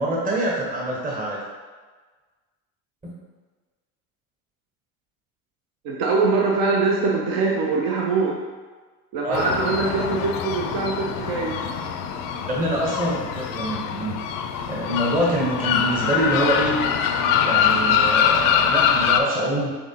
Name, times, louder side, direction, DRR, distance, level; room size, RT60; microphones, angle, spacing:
voice 1, 0.0-1.4 9.2-9.4 12.5-14.2 14.7-16.8 17.4-19.7, right 1 dB, 20° right, -3 dB, 1.0 m, -25 dB
voice 2, 5.8-8.3 9.1-11.5, right 4 dB, 55° right, -1 dB, 0.8 m, -23 dB
sound 1, 9.3-19.2, left 7 dB, 50° left, 0.5 m, -23 dB
5.9 x 3.2 x 2.8 m, 1.4 s
hypercardioid pair, 70°, 44 cm